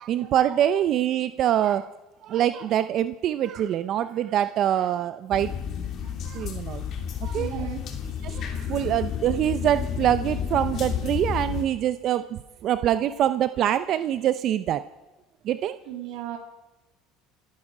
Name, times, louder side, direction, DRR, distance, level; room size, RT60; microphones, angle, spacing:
voice 1, 0.0-1.9 2.2-5.5 6.2-6.8 7.2-7.7 8.2-14.8 15.4-15.8, right 11 dB, 50° right, 12 dB, 0.6 m, -24 dB
sound 1, 5.3-11.6, left 7 dB, 50° left, 2.6 m, -31 dB
voice 2, 7.3-7.8 8.2-8.3 15.9-16.4, right 11 dB, 75° right, 3 dB, 2.2 m, -35 dB
29.0 x 9.8 x 5.0 m, 1.1 s
supercardioid pair, 115°, 0 cm